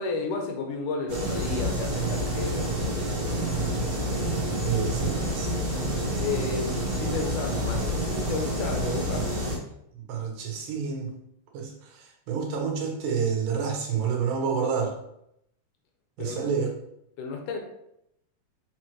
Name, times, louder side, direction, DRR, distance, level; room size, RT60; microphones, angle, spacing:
voice 1, 0.0-4.5 6.2-9.3 16.2-16.4 17.2-17.6, left 4 dB, 75° left, 3 dB, 2.3 m, -33 dB
sound 1, 1.1-9.6, right 1 dB, 45° right, 1.0 m, -28 dB
voice 2, 4.6-5.5 9.9-11.1 11.5-15.0 16.2-16.7, right 6 dB, 90° right, 1 dB, 2.9 m, -29 dB
6.4 x 5.3 x 3.1 m, 0.78 s
omnidirectional pair, 3.8 m